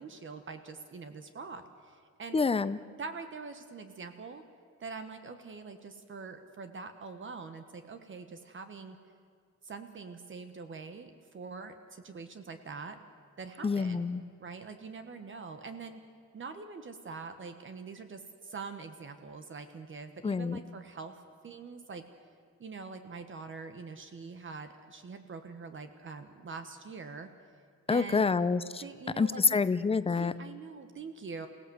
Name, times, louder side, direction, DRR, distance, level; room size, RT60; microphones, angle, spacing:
voice 1, 0.0-2.4 3.0-4.4 4.8-9.0 9.6-13.0 13.4-14.1 14.4-16.0 16.3-21.2 21.4-22.0 22.6-27.3 27.9-28.3 28.8-29.6 30.0-31.5, right 4 dB, 45° right, 8 dB, 1.2 m, -44 dB
voice 2, 2.3-2.8 13.6-14.2 20.2-20.6 27.9-28.8 29.2-30.3, left 4 dB, 20° left, 14 dB, 0.5 m, -27 dB
28.5 x 17.5 x 7.9 m, 2.1 s
wide cardioid pair, 170°, 29 cm